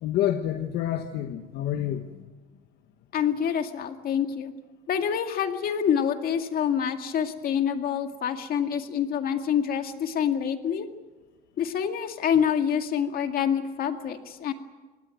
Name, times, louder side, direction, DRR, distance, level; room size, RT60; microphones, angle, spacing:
voice 1, 0.0-2.1, left 11 dB, 80° left, 7 dB, 1.2 m, -28 dB
voice 2, 3.1-4.5 4.9-10.9 11.6-14.5, left 8 dB, 60° left, 6 dB, 2.2 m, -26 dB
23.5 x 18.5 x 9.3 m, 1.3 s
cardioid pair, 110°, 17 cm